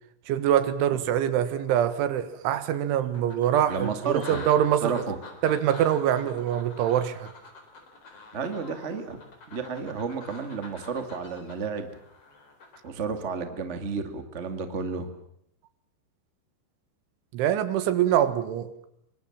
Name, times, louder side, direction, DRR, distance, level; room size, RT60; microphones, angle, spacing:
voice 1, 0.3-5.0 5.4-7.3 17.3-18.7, right 10 dB, 85° right, 12 dB, 3.9 m, -24 dB
sound 1, 2.1-2.2 2.7-12.9, left 3 dB, 35° left, 4.6 m, -46 dB
voice 2, 3.7-4.4 4.8-5.1 8.3-9.2 9.5-11.9 12.8-15.1, right 5 dB, 35° right, 7 dB, 1.1 m, -32 dB
25.0 x 23.5 x 7.4 m, 0.74 s
omnidirectional pair, 5.4 m